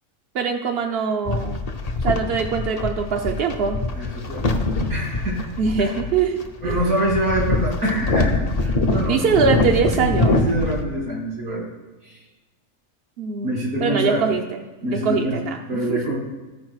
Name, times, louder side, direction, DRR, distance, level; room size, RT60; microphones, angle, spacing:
voice 1, 0.3-1.6 2.0-3.8 5.6-6.8 9.1-10.3 13.2-13.5 13.8-14.6 14.9-16.1, right 5 dB, 60° right, 3 dB, 0.7 m, -23 dB
sound 1, 1.3-10.8, left 2 dB, 40° left, 0.6 m, -24 dB
voice 2, 4.0-5.4 5.8-5.9 6.6-9.4 9.9-11.7 12.0-12.2 13.4-14.2 14.8-15.4 15.7-16.1, right 1 dB, 85° right, -4 dB, 3.3 m, -25 dB
14.5 x 4.9 x 4.7 m, 1.2 s
omnidirectional pair, 1.5 m